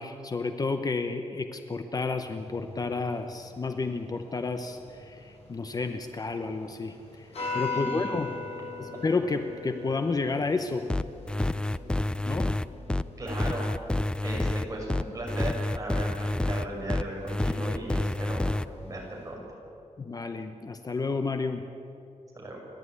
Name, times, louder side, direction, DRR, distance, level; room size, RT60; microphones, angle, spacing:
voice 1, 0.0-7.3 7.5-8.3 8.8-10.8 12.2-12.6 20.0-21.6, left 3 dB, 30° left, 7 dB, 0.9 m, -31 dB
sound 1, 2.2-19.3, left 4 dB, 60° left, 6.8 m, -42 dB
voice 2, 7.7-8.2 13.2-18.5 18.8-19.4 22.3-22.6, right 1 dB, 25° right, -2 dB, 6.4 m, -37 dB
sound 2, 10.9-18.7, left 1 dB, 10° left, 0.4 m, -28 dB
29.5 x 12.0 x 9.7 m, 2.8 s
wide cardioid pair, 165°, 12 cm